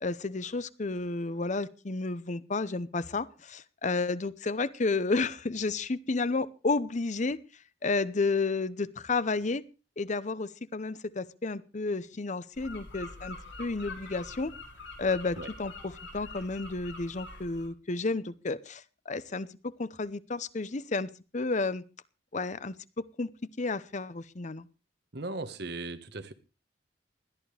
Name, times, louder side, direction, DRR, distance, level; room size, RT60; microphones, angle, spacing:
voice 1, 0.0-7.4 7.8-9.6 10.0-14.5 15.0-21.8 22.3-22.7 23.2-23.3 23.6-24.7, left 3 dB, 40° left, 17 dB, 0.7 m, -31 dB
sound 1, 12.5-17.7, left 2 dB, 80° left, 7.1 m, -45 dB
voice 2, 25.1-26.3, right 2 dB, 65° right, 10 dB, 1.4 m, -37 dB
20.5 x 13.5 x 3.4 m, 0.32 s
head